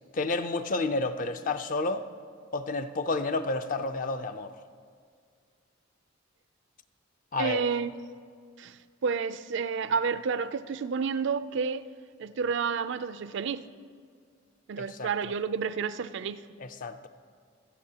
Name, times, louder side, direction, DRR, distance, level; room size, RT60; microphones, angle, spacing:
voice 1, 0.1-2.1 2.5-4.5 7.3-7.6 14.8-15.3 16.6-17.1, left 3 dB, 45° left, 0.5 m, -30 dB
voice 2, 7.4-7.9 8.6-11.8 12.2-13.7 14.7-16.4, right 5 dB, 65° right, 0.4 m, -30 dB
26.0 x 8.7 x 2.8 m
head